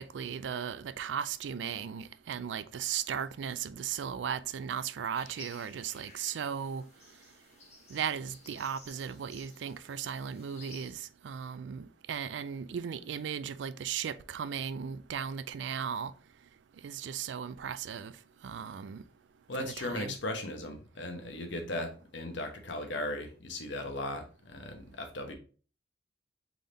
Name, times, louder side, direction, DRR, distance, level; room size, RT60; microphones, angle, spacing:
voice 1, 0.0-6.8 7.9-16.1 16.8-18.1 18.4-19.0 19.6-20.2, right 8 dB, 75° right, 0.3 m, -36 dB
sound 1, 5.1-10.9, left 2 dB, 35° left, 1.4 m, -55 dB
voice 2, 19.5-25.3, left 1 dB, 80° left, 1.0 m, -37 dB
3.8 x 3.4 x 3.9 m
head